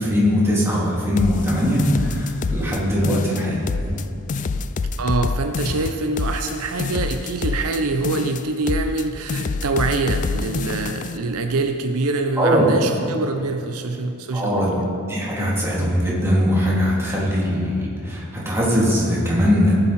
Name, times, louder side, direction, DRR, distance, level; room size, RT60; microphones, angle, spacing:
voice 1, 0.0-4.0 12.4-12.6 14.3-14.8 15.1-19.8, equal, 10° right, -6 dB, 2.9 m, -20 dB
sound 1, 1.2-2.8 3.0-4.0 4.3-9.0 9.3-11.2, left 4 dB, 35° left, 0.3 m, -26 dB
voice 2, 5.0-14.8, right 3 dB, 70° right, 5 dB, 0.7 m, -25 dB
19.0 x 7.7 x 4.3 m, 2.7 s
head